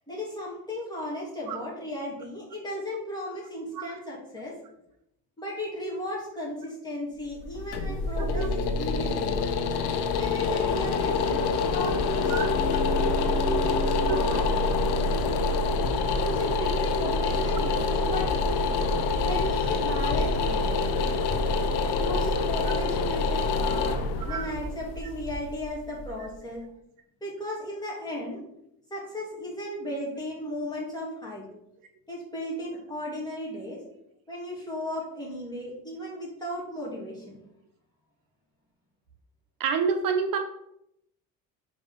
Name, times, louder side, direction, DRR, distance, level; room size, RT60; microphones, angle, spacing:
voice 1, 0.1-4.5 5.4-9.4 10.2-12.6 13.4-14.4 16.2-18.3 19.2-20.9 22.0-24.0 24.2-26.6 27.2-28.4 28.9-31.4 32.1-33.8 34.3-37.4, left 1 dB, 10° left, -5 dB, 2.8 m, -35 dB
sound 1, 7.3-26.3, left 3 dB, 85° left, 0.8 m, -26 dB
voice 2, 8.2-8.6 12.3-12.5 13.0-13.1 14.1-14.4 18.1-18.2 21.0-21.1 24.2-24.5 39.6-40.4, right 6 dB, 60° right, 5 dB, 0.8 m, -29 dB
5.3 x 4.6 x 5.4 m, 0.80 s
cardioid pair, 135°, 38 cm